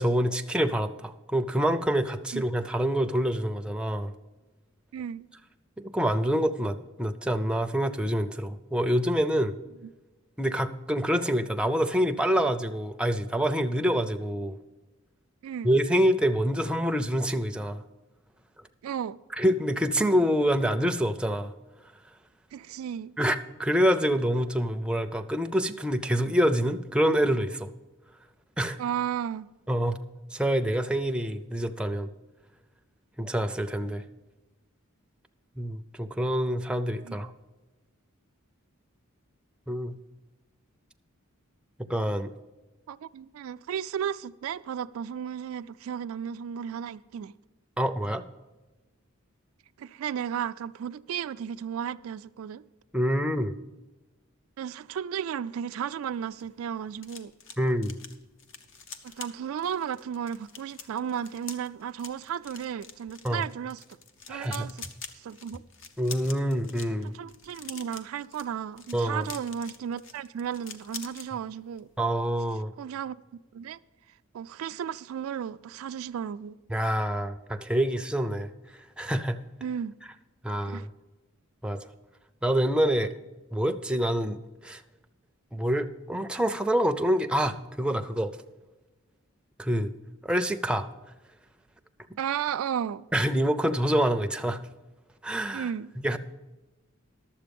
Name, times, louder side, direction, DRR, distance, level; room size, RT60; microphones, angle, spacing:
voice 1, 0.0-4.1 5.8-9.5 10.4-14.6 15.6-17.8 19.4-21.5 23.2-27.7 28.6-28.8 29.7-30.0 30.3-32.1 33.2-34.0 35.6-37.3 39.7-40.0 41.9-42.3 47.8-48.2 52.9-53.6 57.6-58.0 63.2-63.4 64.3-64.7 66.0-67.1 68.9-69.3 72.0-72.7 76.7-78.5 79.0-79.4 80.4-80.9 81.6-81.9 82.4-83.1 83.5-84.8 85.5-88.4 89.6-89.9 90.2-90.9 93.1-94.6 95.2-95.7 96.0-96.2, equal, 5° right, 0.5 m, -26 dB
voice 2, 4.9-5.3 15.4-15.7 18.8-19.2 22.5-23.1 28.8-29.5 37.0-37.2 42.9-47.3 49.8-52.6 54.6-57.3 59.0-63.8 64.3-64.8 65.1-65.6 67.0-71.9 72.8-73.2 73.5-73.8 74.3-76.6 79.6-79.9 80.7-80.9 92.2-93.1 95.5-95.9, right 8 dB, 80° right, 0.3 m, -34 dB
sound 1, 56.1-71.3 71.6-71.9 72.1-72.4, left 5 dB, 65° left, 0.8 m, -46 dB
11.5 x 7.5 x 5.2 m
head